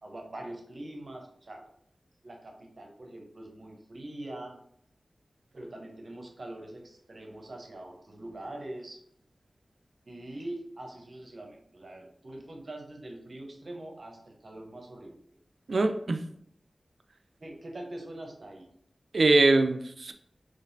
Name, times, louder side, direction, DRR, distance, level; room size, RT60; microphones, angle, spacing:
voice 1, 0.0-1.6 2.2-4.6 5.5-9.0 10.1-15.2 17.4-18.7, right 1 dB, 60° right, 2 dB, 0.8 m, -43 dB
voice 2, 15.7-16.2 19.1-20.1, right 2 dB, 75° right, 7 dB, 0.4 m, -23 dB
3.9 x 3.1 x 2.6 m, 0.69 s
cardioid pair, 40°, 0 cm